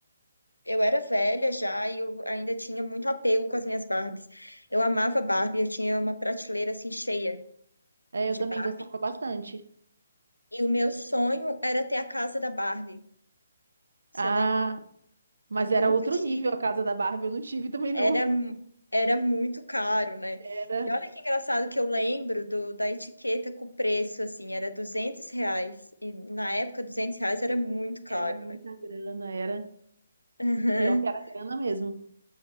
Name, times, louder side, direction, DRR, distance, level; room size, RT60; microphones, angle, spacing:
voice 1, 0.7-7.4 8.3-8.7 10.5-13.0 14.2-14.5 15.7-15.9 17.9-18.5 18.9-20.4 20.9-25.7 26.0-28.6 30.4-31.0, equal, 85° left, 10 dB, 0.7 m, -28 dB
voice 2, 8.1-9.6 14.1-14.8 15.5-18.2 20.4-20.9 28.1-29.7 30.8-32.0, right 3 dB, 60° right, 9 dB, 0.7 m, -29 dB
7.4 x 4.8 x 4.1 m, 0.67 s
figure-of-eight pair, 140°, 0 cm